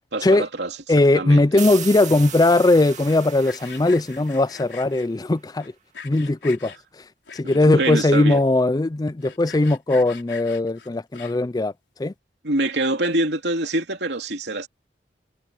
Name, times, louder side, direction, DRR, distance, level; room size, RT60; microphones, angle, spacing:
voice 1, 0.1-0.8 1.1-1.4 7.4-8.4 12.4-14.7, right 2 dB, 75° right, 3.0 m, -25 dB
voice 2, 0.9-5.7 6.0-6.7 7.3-11.7 12.0-12.1, left 2 dB, 20° left, 0.4 m, -19 dB
sound 1, 1.6-5.2, right 9 dB, 40° right, 2.1 m, -37 dB
Sawing, 2.9-5.1 5.6-6.8 7.3-7.9 8.3-8.4 8.6-8.7 9.1-11.6, left 6 dB, 80° left, 4.0 m, -42 dB
head